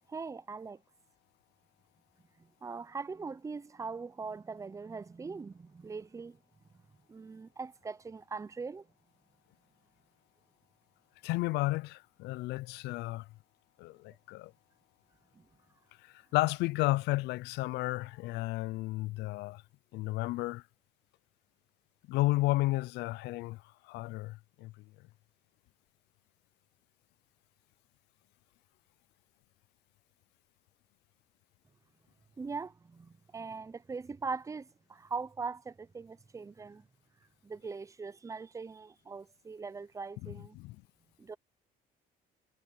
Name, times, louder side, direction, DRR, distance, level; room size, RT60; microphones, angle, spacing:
voice 1, 0.1-0.8 2.4-6.4 7.1-8.9 15.3-15.5 32.4-36.9 37.4-40.6 41.2-41.4, right 4 dB, 20° right, 0.6 m, -41 dB
voice 2, 11.2-13.3 13.8-14.5 16.3-19.6 19.9-20.6 22.1-23.6 23.9-24.7 40.3-40.8, left 19 dB, 85° left, 0.4 m, -32 dB
cardioid pair, 110°, 17 cm